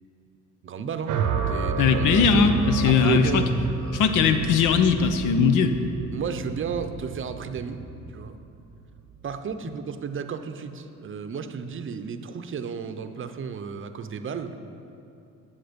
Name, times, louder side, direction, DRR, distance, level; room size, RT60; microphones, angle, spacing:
voice 1, 0.6-2.5 2.8-3.5 3.8-4.2 6.1-7.8 8.1-8.4 9.2-14.6, right 6 dB, 45° right, 9 dB, 0.6 m, -33 dB
sound 1, 1.1-9.3, right 5 dB, 80° right, 0.7 m, -30 dB
voice 2, 1.8-3.4 3.9-5.8, left 6 dB, 85° left, 8 dB, 0.7 m, -20 dB
10.0 x 7.2 x 5.1 m, 2.7 s
cardioid pair, 90°, 30 cm